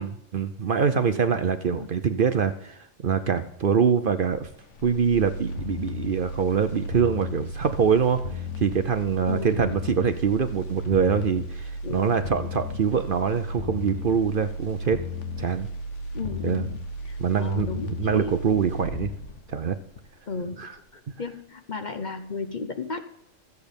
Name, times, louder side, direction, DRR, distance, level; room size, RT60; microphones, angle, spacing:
voice 1, 0.0-4.5 4.8-15.0 15.4-15.7 16.4-16.7 17.2-19.1 19.5-19.8 20.6-20.7, right 6 dB, 50° right, 10 dB, 0.8 m, -24 dB
voice 2, 1.0-1.4 1.7-1.9 9.3-9.7 11.8-12.2 16.1-16.8 17.1-18.4 20.3-20.7 20.9-23.0, left 4 dB, 40° left, 8 dB, 0.9 m, -34 dB
sound 1, 4.3-20.4 20.8-20.9, left 1 dB, 70° left, 1.4 m, -34 dB
14.0 x 8.2 x 5.2 m, 0.72 s
omnidirectional pair, 1.3 m